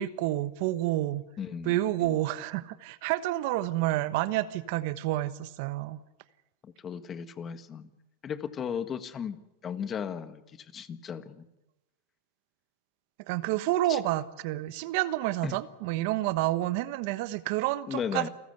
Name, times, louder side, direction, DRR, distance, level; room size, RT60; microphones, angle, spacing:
voice 1, 0.0-1.2 1.6-6.0 13.3-18.3, right 15 dB, 60° right, 1.2 m, -29 dB
voice 2, 1.4-2.2 6.6-7.9 8.2-9.4 9.6-11.4 13.9-14.0 15.4-15.6 17.9-18.3, left 7 dB, 25° left, 1.5 m, -36 dB
28.5 x 14.5 x 8.0 m
supercardioid pair, 130°, 0 cm